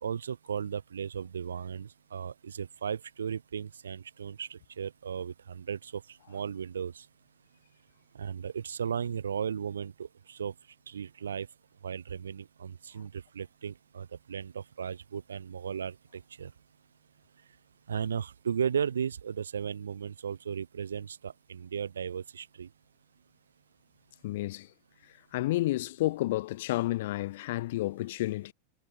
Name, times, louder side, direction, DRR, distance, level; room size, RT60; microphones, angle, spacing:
voice 1, 0.0-6.0 6.3-7.0 8.1-10.5 10.9-11.5 11.8-16.5 17.9-22.7, right 7 dB, 70° right, 0.7 m, -35 dB
voice 2, 24.2-24.7 25.3-28.5, left 17 dB, 55° left, 0.4 m, -30 dB
figure-of-eight pair, 90°, 0 cm